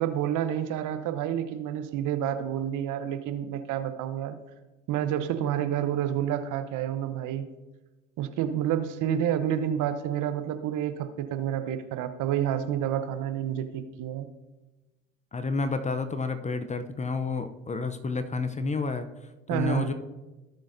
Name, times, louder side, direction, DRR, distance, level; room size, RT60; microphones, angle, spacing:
voice 1, 0.0-4.4 4.9-7.5 8.2-14.3 19.5-19.9, right 10 dB, 50° right, 10 dB, 0.9 m, -29 dB
voice 2, 15.3-19.9, left 4 dB, 20° left, 10 dB, 0.6 m, -30 dB
16.5 x 6.2 x 2.7 m, 1.1 s
hypercardioid pair, 75°, 39 cm